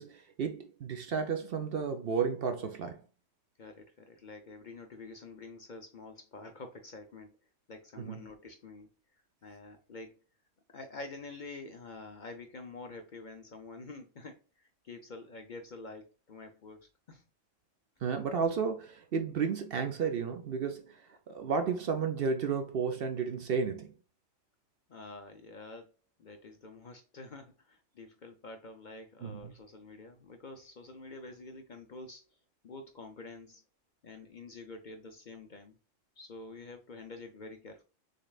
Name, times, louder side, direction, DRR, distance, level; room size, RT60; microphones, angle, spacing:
voice 1, 0.0-3.0 8.0-8.2 18.0-21.0 21.3-23.9 29.2-29.4, right 6 dB, 55° right, 0.8 m, -32 dB
voice 2, 3.6-7.3 7.7-10.2 10.7-17.2 24.9-25.9 26.2-32.4 32.6-33.6 34.0-35.8 36.2-37.8, left 3 dB, 50° left, 0.7 m, -48 dB
6.5 x 3.2 x 2.3 m
omnidirectional pair, 1.3 m